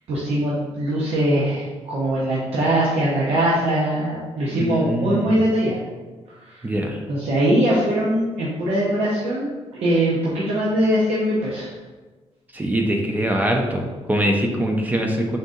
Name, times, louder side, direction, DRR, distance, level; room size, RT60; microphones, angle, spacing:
voice 1, 0.1-5.8 6.5-6.6 7.1-11.7, right 1 dB, 70° right, -6 dB, 0.7 m, -21 dB
voice 2, 4.5-5.4 6.6-7.0 12.5-15.4, right 1 dB, 15° right, 2 dB, 0.4 m, -23 dB
3.8 x 2.6 x 3.7 m, 1.3 s
cardioid pair, 140°, 11 cm